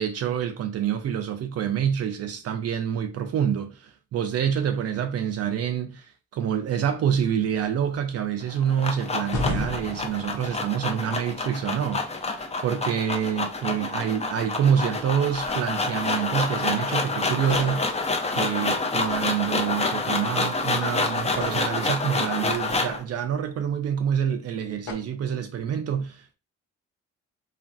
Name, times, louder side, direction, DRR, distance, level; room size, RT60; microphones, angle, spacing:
voice 1, 0.0-17.8 18.3-26.3, right 8 dB, 55° right, 0.4 m, -27 dB
sound 1, 8.4-23.0, left 3 dB, 20° left, 0.5 m, -28 dB
sound 2, 9.3-11.0 15.3-15.7 17.4-18.7 18.9-19.2 21.2-23.2 24.9-25.0, left 1 dB, 70° left, 1.1 m, -34 dB
3.0 x 2.4 x 2.4 m
cardioid pair, 90°, 30 cm